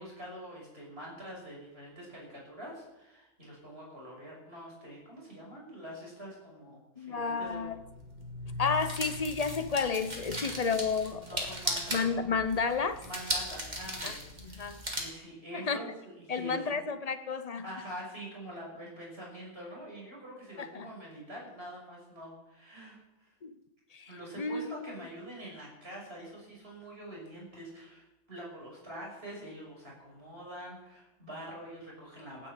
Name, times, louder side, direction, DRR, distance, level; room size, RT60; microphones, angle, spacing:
voice 1, 0.0-7.6 8.5-8.6 10.4-10.7 11.2-12.2 12.6-16.8 17.6-23.3 24.1-32.5, equal, 45° right, -3 dB, 6.6 m, -45 dB
voice 2, 7.0-7.8 8.6-11.5 11.9-13.0 14.0-14.2 14.4-14.8 15.5-15.9 16.3-17.6 20.6-20.9 23.4-23.5 23.9-24.7, left 5 dB, 35° left, 11 dB, 0.8 m, -31 dB
sound 1, 7.5-15.0, equal, 30° right, 2.9 m, -38 dB
15.0 x 9.7 x 8.4 m, 1.0 s
omnidirectional pair, 1.4 m